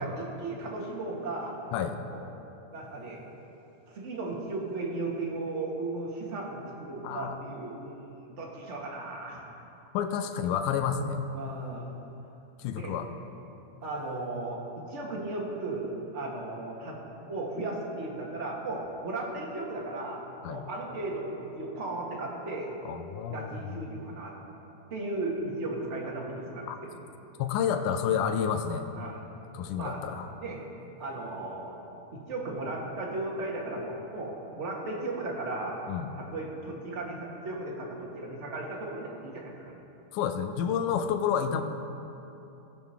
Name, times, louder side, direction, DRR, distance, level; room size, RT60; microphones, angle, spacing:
voice 1, 0.0-1.6 2.0-2.3 2.7-3.2 3.9-9.4 11.3-11.9 12.8-12.9 13.8-22.7 23.3-24.3 24.9-27.0 28.9-29.2 29.7-30.0 30.4-30.6 31.0-31.8 32.1-35.8 36.1-39.7, right 2 dB, 30° right, -3 dB, 1.3 m, -36 dB
voice 2, 7.0-7.4 9.9-11.2 12.6-13.1 20.4-20.6 22.9-23.6 26.7-26.8 27.4-28.9 29.5-30.3 35.9-36.1 40.1-41.6, left 8 dB, 85° left, 7 dB, 2.1 m, -29 dB
17.5 x 7.1 x 5.8 m, 2.9 s
omnidirectional pair, 3.7 m